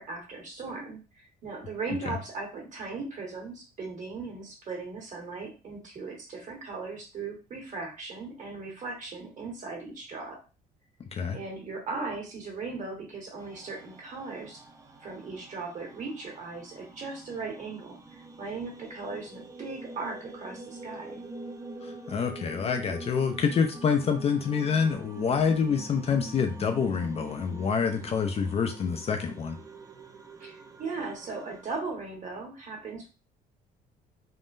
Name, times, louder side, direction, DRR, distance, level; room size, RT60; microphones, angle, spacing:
voice 1, 0.0-10.4 11.3-14.6 15.0-18.0 18.4-21.2 30.4-33.1, right 4 dB, 50° right, 0 dB, 1.4 m, -38 dB
sound 1, 13.4-31.6, right 2 dB, 20° right, 0.5 m, -45 dB
voice 2, 21.8-29.6, left 6 dB, 35° left, 6 dB, 0.4 m, -27 dB
3.6 x 2.2 x 2.5 m, 0.32 s
cardioid pair, 110°, 17 cm